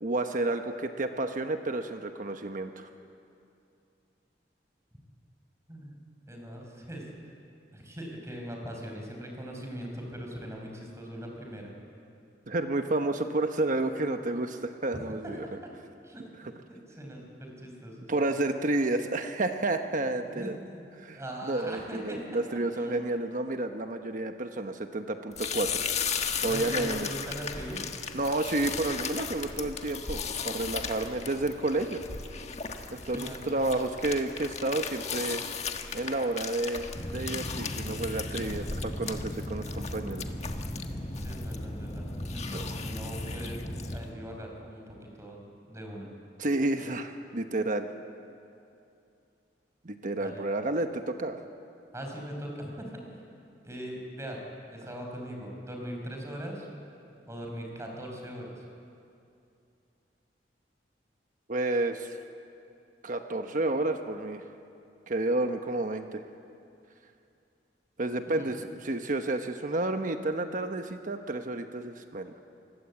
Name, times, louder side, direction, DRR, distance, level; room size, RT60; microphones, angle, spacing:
voice 1, 0.0-2.9 12.5-15.4 18.1-20.6 21.0-25.8 26.4-27.1 28.1-32.0 32.9-35.4 35.9-36.9 37.1-40.2 42.5-42.6 46.4-47.9 49.8-51.4 61.5-62.2 63.0-64.4 65.1-66.2 68.0-72.3, right 2 dB, 50° right, 6 dB, 1.1 m, -30 dB
voice 2, 6.3-7.1 7.7-11.7 14.9-15.6 16.0-16.2 16.7-18.1 20.3-20.9 21.1-23.0 26.4-27.8 30.9-31.3 33.0-33.5 41.2-43.6 43.9-45.4 45.7-46.1 50.2-50.4 51.9-53.2 53.6-54.4 54.7-56.7 57.3-58.6 68.3-68.5, equal, 15° right, 1 dB, 5.0 m, -41 dB
sound 1, 25.3-44.0, left 6 dB, 40° left, 1.4 m, -37 dB
sound 2, 36.9-44.0, equal, 25° left, 2.8 m, -37 dB
26.5 x 20.5 x 8.5 m, 2.6 s
head